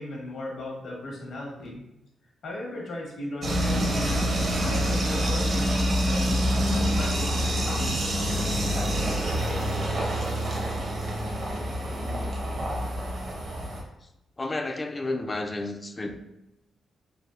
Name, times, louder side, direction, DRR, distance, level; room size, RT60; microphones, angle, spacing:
voice 1, 0.0-1.8 2.4-8.1, left 1 dB, 75° left, -3 dB, 1.0 m, -37 dB
sound 1, 3.4-13.8, equal, 60° right, 0.8 m, -26 dB
voice 2, 12.0-12.3 13.3-13.4 14.4-16.2, left 2 dB, 30° left, 6 dB, 0.3 m, -32 dB
3.3 x 2.3 x 2.4 m, 0.87 s
cardioid pair, 75°, 0 cm